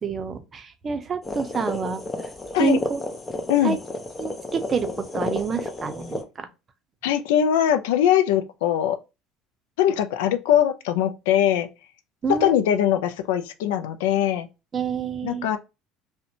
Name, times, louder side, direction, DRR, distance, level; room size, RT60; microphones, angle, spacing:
voice 1, 0.0-2.0 2.6-3.0 3.6-3.8 4.2-6.5 12.2-12.5 14.7-15.5, right 5 dB, 35° right, 0.5 m, -27 dB
sound 1, 1.2-6.2, left 2 dB, 25° left, 0.5 m, -32 dB
voice 2, 7.0-9.0 9.8-11.7 12.4-14.5 15.2-15.6, left 10 dB, 85° left, 0.3 m, -21 dB
2.5 x 2.1 x 2.7 m
supercardioid pair, 90°, 0 cm